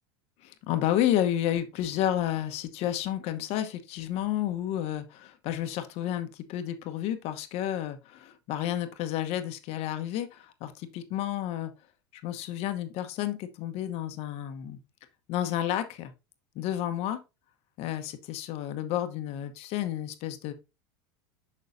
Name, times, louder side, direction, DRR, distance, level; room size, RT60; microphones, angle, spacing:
voice 1, 0.4-11.7 12.2-14.8 15.3-16.1 16.5-17.2 17.8-20.5, left 11 dB, 55° left, 1.0 m, -31 dB
6.4 x 6.3 x 2.6 m
hypercardioid pair, 100°, 13 cm